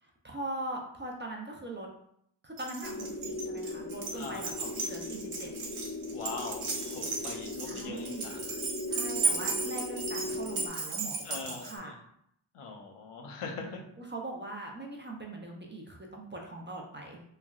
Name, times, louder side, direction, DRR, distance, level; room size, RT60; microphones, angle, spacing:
voice 1, 0.0-1.9 2.4-5.5 7.6-8.3 8.9-12.0 14.1-17.2, right 2 dB, 25° right, 0 dB, 0.4 m, -41 dB
Keys jangling, 2.6-11.8, right 4 dB, 75° right, 0.7 m, -35 dB
sound 1, 2.8-10.7, left 2 dB, 25° left, 0.5 m, -39 dB
voice 2, 4.1-4.7 6.1-8.6 11.2-11.9 12.5-13.8, left 4 dB, 85° left, 1 dB, 0.6 m, -42 dB
3.2 x 2.2 x 2.3 m, 0.72 s
wide cardioid pair, 80°, 50 cm